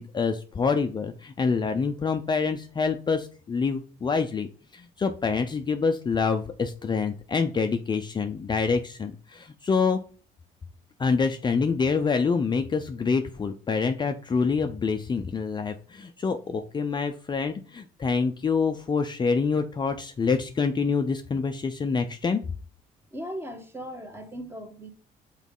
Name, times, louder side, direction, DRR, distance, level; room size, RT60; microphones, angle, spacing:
voice 1, 0.0-4.5 4.7-10.0 11.0-22.4, left 5 dB, 25° left, 0.6 m, -26 dB
voice 2, 23.1-24.9, equal, 15° right, 1.6 m, -38 dB
6.1 x 4.1 x 5.5 m
cardioid pair, 110°, 17 cm